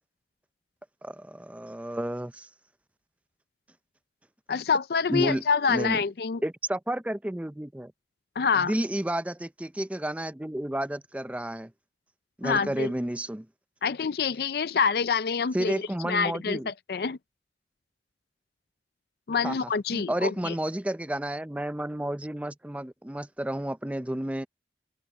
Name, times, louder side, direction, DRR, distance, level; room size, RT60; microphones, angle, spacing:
voice 1, 1.0-2.5 5.1-6.0 6.4-7.9 8.6-11.7 12.4-13.5 15.5-16.7 19.4-24.5, right 1 dB, 10° right, 0.4 m, -31 dB
voice 2, 4.5-6.4 8.4-8.7 12.4-12.9 13.8-17.2 19.3-20.5, left 5 dB, 60° left, 0.4 m, -26 dB
open air
head